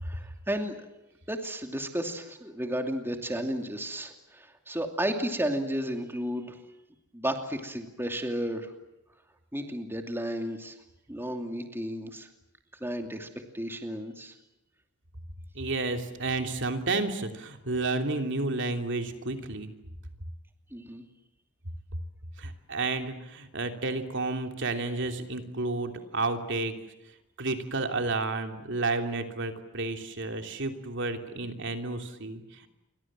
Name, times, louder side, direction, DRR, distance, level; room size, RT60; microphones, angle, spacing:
voice 1, 0.0-0.8 1.3-6.6 7.1-8.7 9.5-10.8 11.1-12.3 12.8-13.3 13.5-14.3 20.7-21.0, equal, 10° right, 5 dB, 2.6 m, -33 dB
voice 2, 15.5-19.7 22.4-26.7 27.4-32.7, right 3 dB, 55° right, 6 dB, 3.0 m, -31 dB
29.5 x 24.5 x 7.6 m, 0.93 s
head